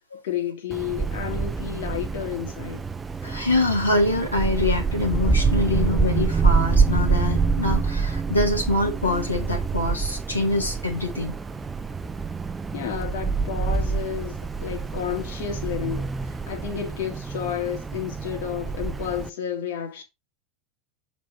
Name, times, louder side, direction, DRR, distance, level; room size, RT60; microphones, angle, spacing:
voice 1, 0.2-2.8 12.7-20.0, left 9 dB, 60° left, 1.9 m, -31 dB
Wind, 0.7-19.3, right 5 dB, 15° right, 0.5 m, -26 dB
voice 2, 3.2-11.3, left 2 dB, 90° left, 1.9 m, -25 dB
7.5 x 4.2 x 4.4 m
figure-of-eight pair, 80°, 0 cm